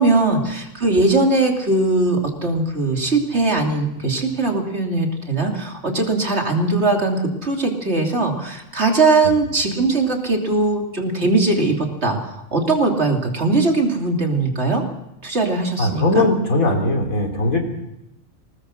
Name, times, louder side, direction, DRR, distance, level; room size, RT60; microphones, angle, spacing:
voice 1, 0.0-14.8 15.2-16.3, right 3 dB, 50° right, 2 dB, 3.2 m, -20 dB
voice 2, 15.8-17.6, left 2 dB, 85° left, 3 dB, 3.7 m, -19 dB
20.5 x 19.0 x 6.5 m, 0.88 s
omnidirectional pair, 1.4 m